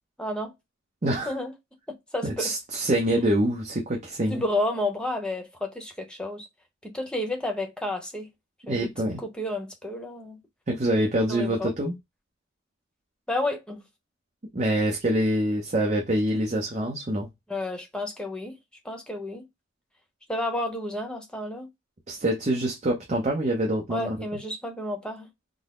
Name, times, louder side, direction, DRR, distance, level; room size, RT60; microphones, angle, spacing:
voice 1, 0.2-0.5 1.3-1.5 1.9-2.5 4.3-6.5 6.8-8.3 8.7-8.9 9.2-10.4 11.3-11.7 13.3-13.8 17.5-18.6 18.8-19.4 20.3-21.7 23.9-25.3, left 1 dB, 5° left, 0.9 m, -31 dB
voice 2, 1.0-1.3 2.2-4.4 8.7-9.2 10.7-11.9 14.5-17.3 22.1-24.2, right 1 dB, 35° right, 0.8 m, -25 dB
3.9 x 2.0 x 3.7 m
head